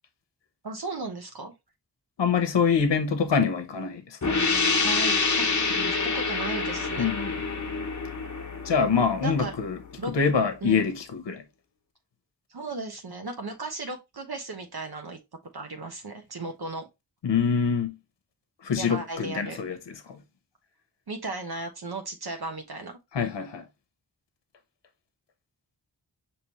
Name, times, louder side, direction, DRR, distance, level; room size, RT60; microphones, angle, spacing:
voice 1, 0.6-1.5 4.8-7.1 9.2-9.5 10.0-10.1 10.6-10.8 12.5-15.2 15.5-16.9 18.8-19.6 21.1-23.0, right 3 dB, 60° right, 1.0 m, -36 dB
voice 2, 2.2-4.4 7.0-7.4 8.6-9.8 10.1-11.4 17.2-18.0 18.6-20.2 23.1-23.6, left 6 dB, 75° left, 0.8 m, -25 dB
sound 1, 4.2-9.7, left 4 dB, 40° left, 1.1 m, -27 dB
5.3 x 3.0 x 2.9 m
cardioid pair, 45°, 42 cm